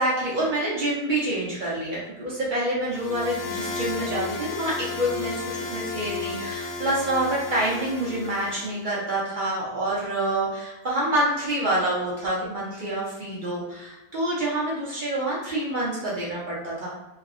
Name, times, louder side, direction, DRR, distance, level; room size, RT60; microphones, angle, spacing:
voice 1, 0.0-16.9, right 1 dB, 80° right, -7 dB, 0.4 m, -27 dB
sound 1, 2.9-8.7, left 4 dB, 75° left, 1.0 m, -33 dB
3.2 x 2.0 x 2.4 m, 1.0 s
omnidirectional pair, 1.7 m